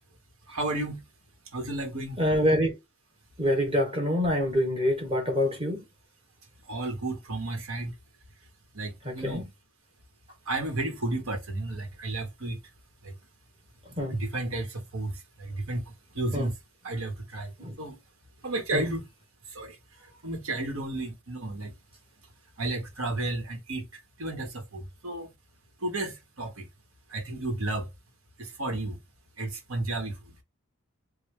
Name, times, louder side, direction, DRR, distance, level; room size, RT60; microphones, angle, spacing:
voice 1, 0.5-1.0 1.5-2.2 6.7-7.9 8.7-9.5 10.5-12.6 13.0-13.1 14.1-16.5 16.8-17.5 17.8-18.0 18.4-19.0 19.5-19.8 20.2-21.7 22.6-23.9 24.2-25.3 25.8-26.7 27.1-27.9 28.4-29.0 29.4-30.4, right 2 dB, 90° right, 1.3 m, -32 dB
voice 2, 2.2-2.8 3.4-5.8 9.0-9.5 14.0-14.2 16.3-16.5 17.6-17.7 18.7-18.8, equal, 25° right, 1.1 m, -26 dB
3.3 x 2.3 x 3.2 m
head